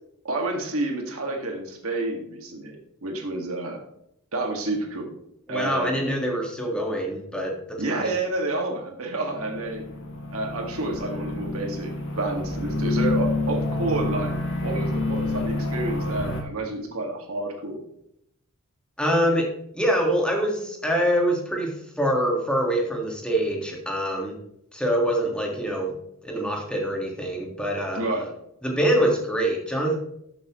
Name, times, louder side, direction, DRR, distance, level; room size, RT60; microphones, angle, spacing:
voice 1, 0.2-3.8 4.3-5.1 5.5-6.0 7.8-9.8 10.3-14.3 14.6-17.8 27.9-28.3, right 2 dB, 75° right, 1 dB, 2.0 m, -29 dB
voice 2, 5.5-8.1 19.0-19.5 19.7-24.4 24.7-25.9 26.2-28.0 28.6-30.0, equal, 5° left, -1 dB, 1.7 m, -25 dB
sound 1, 9.3-16.4, left 2 dB, 60° left, 1.4 m, -28 dB
12.0 x 7.2 x 3.1 m, 0.76 s
head